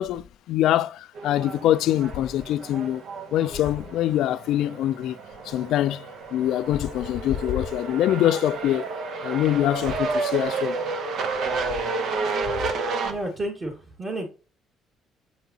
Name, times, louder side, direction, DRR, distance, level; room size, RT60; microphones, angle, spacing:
voice 1, 0.0-3.0 3.3-5.2 5.4-8.9 9.2-10.8, left 12 dB, 75° left, 0.3 m, -24 dB
sound 1, 1.1-13.1, right 4 dB, 70° right, 1.0 m, -31 dB
voice 2, 13.0-14.3, right 1 dB, 40° right, 2.0 m, -31 dB
7.0 x 5.4 x 2.9 m
supercardioid pair, 80°, 0 cm